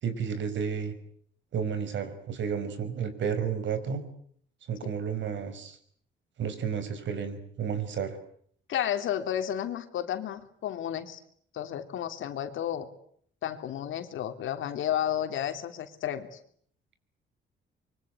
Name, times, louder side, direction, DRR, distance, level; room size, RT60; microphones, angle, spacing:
voice 1, 0.0-0.9 1.5-4.1 4.7-5.8 6.4-8.2, right 7 dB, 70° right, 11 dB, 5.4 m, -32 dB
voice 2, 8.7-11.2 11.5-12.9 13.4-16.4, left 10 dB, 75° left, 8 dB, 3.1 m, -32 dB
25.5 x 24.0 x 9.4 m, 0.64 s
cardioid pair, 90°, 20 cm